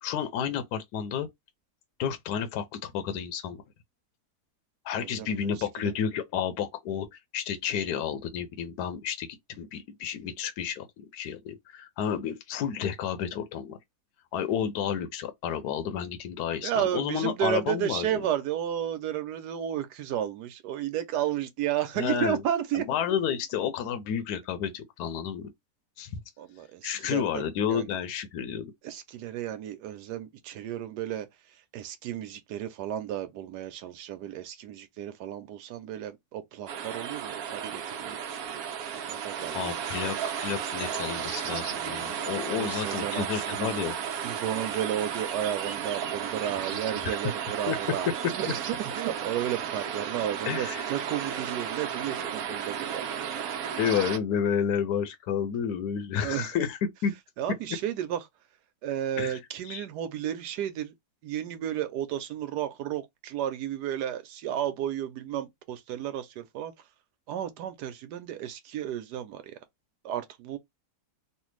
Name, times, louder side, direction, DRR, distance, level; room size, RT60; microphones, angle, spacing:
voice 1, 0.0-1.3 2.0-3.6 4.8-9.3 9.6-13.8 14.3-18.3 22.0-22.4 22.7-25.5 26.0-26.1 26.8-28.7 39.5-44.0 46.7-47.2 47.7-47.8 48.4-48.5 50.5-50.9 53.8-57.1 59.2-59.9, left 8 dB, 80° left, 1.2 m, -31 dB
voice 2, 5.0-5.4 5.8-5.9 16.6-22.9 26.4-27.4 27.7-27.8 28.8-31.3 31.7-38.6 38.9-40.2 42.5-43.9 44.2-53.1 56.2-56.5 57.4-58.2 58.8-60.9 61.2-66.7 67.3-69.6 70.0-70.6, right 10 dB, 85° right, 1.2 m, -33 dB
sound 1, 36.7-54.2, right 8 dB, 70° right, 1.1 m, -34 dB
3.3 x 2.4 x 3.1 m
omnidirectional pair, 1.7 m